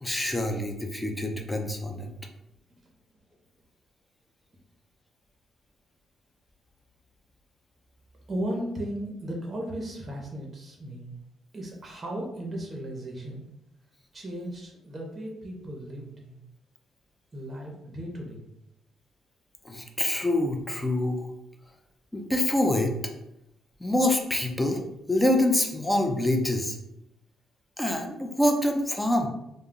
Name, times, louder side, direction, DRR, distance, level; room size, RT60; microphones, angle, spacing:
voice 1, 0.0-2.1 19.6-21.3 22.1-23.0 23.8-24.8 25.1-26.8 27.8-29.3, left 1 dB, 10° left, 3 dB, 0.4 m, -26 dB
voice 2, 8.3-11.1 11.5-13.4 14.1-16.4 17.3-18.5, right 1 dB, 30° right, 0 dB, 0.6 m, -36 dB
2.2 x 2.0 x 3.6 m, 0.83 s
cardioid pair, 90°, 0 cm